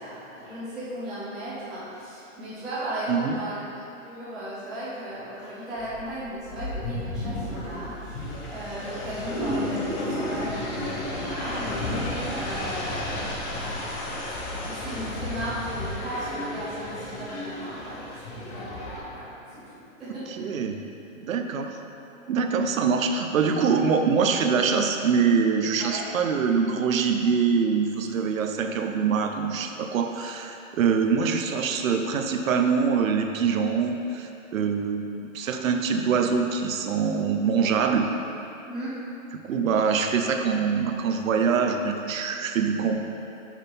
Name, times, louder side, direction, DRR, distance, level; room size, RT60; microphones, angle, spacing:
voice 1, 0.0-3.5 4.0-13.4 14.6-20.5 25.8-26.0 38.6-38.9, right 1 dB, ahead, -19 dB, 0.3 m, -36 dB
voice 2, 3.1-3.4 20.3-20.8 21.3-21.8 22.3-35.1 35.3-38.1 39.4-43.0, right 6 dB, 75° right, 5 dB, 0.8 m, -24 dB
sound 1, 5.8-19.0, left 1 dB, 25° left, 1.0 m, -33 dB
6.3 x 5.8 x 3.5 m, 2.8 s
hypercardioid pair, 150°, 40 cm